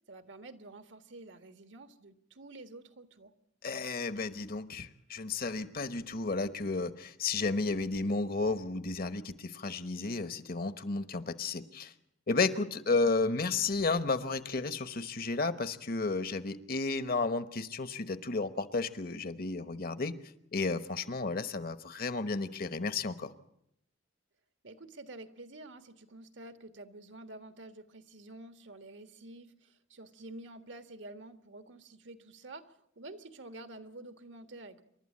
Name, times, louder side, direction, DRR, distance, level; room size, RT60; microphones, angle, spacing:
voice 1, 0.1-3.3 24.6-34.8, right 2 dB, 75° right, 9 dB, 1.5 m, -49 dB
voice 2, 3.6-11.9 12.3-20.2 20.5-23.3, left 3 dB, 50° left, 12 dB, 1.1 m, -32 dB
28.0 x 12.0 x 8.6 m, 0.76 s
head